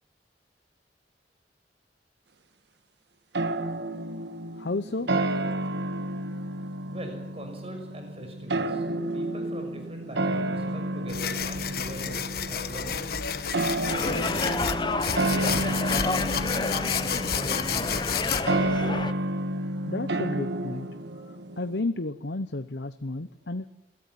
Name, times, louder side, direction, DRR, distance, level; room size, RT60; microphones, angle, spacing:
sound 1, 3.3-21.8, right 1 dB, 75° right, 1.6 m, -31 dB
voice 1, 4.6-5.1 19.9-20.9 21.6-23.7, left 2 dB, 75° left, 11 dB, 0.9 m, -32 dB
voice 2, 6.8-8.8 9.1-13.1, equal, 35° right, 4 dB, 6.4 m, -42 dB
sound 2, 11.1-18.4, left 7 dB, 60° left, 1.4 m, -31 dB
sound 3, 13.9-19.1, left 3 dB, 25° left, 1.1 m, -30 dB
22.5 x 17.5 x 9.7 m, 0.96 s
head